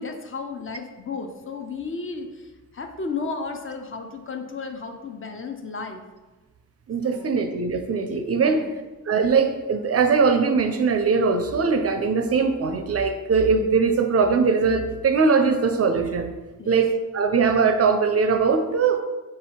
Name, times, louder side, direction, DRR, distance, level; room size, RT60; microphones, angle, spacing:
voice 1, 0.0-6.0 7.0-7.3 8.4-8.7 16.6-16.8, left 4 dB, 35° left, 5 dB, 0.5 m, -34 dB
voice 2, 6.9-8.7 9.1-16.3 16.7-19.0, right 5 dB, 45° right, 6 dB, 0.4 m, -21 dB
3.8 x 2.8 x 4.2 m, 1.2 s
cardioid pair, 100°, 35 cm